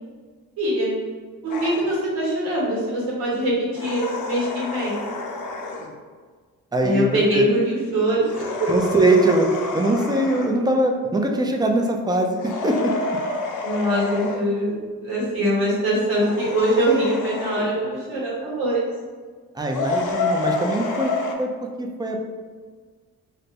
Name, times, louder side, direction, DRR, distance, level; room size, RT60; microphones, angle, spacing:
voice 1, 0.6-0.9 1.4-5.0 6.8-8.7 13.6-14.7 15.0-18.9, right 1 dB, 85° right, -6 dB, 1.4 m, -23 dB
sound 1, 1.5-1.9 3.7-5.9 8.2-10.6 12.4-14.4 16.2-17.7 19.7-21.3, left 3 dB, 60° left, 0.6 m, -29 dB
voice 2, 6.7-7.4 8.7-12.4 12.6-12.9 19.5-21.1 21.4-21.5 21.8-22.2, right 2 dB, 10° right, 2 dB, 0.4 m, -21 dB
2.6 x 2.2 x 4.0 m, 1.5 s
cardioid pair, 75°, 36 cm